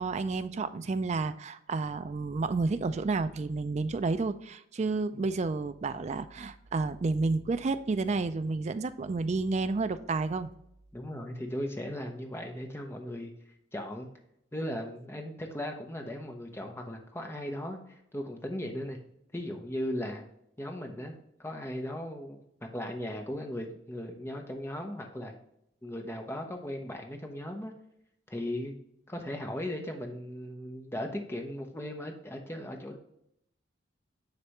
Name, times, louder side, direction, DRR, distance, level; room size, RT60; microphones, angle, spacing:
voice 1, 0.0-10.5, right 3 dB, 35° right, 11 dB, 0.3 m, -30 dB
voice 2, 10.9-13.3 13.7-14.1 14.5-19.0 19.3-20.2 20.6-25.4 25.8-27.7 28.3-28.7 29.1-33.0, left 1 dB, 10° left, 3 dB, 0.7 m, -37 dB
9.7 x 3.3 x 3.0 m, 0.76 s
head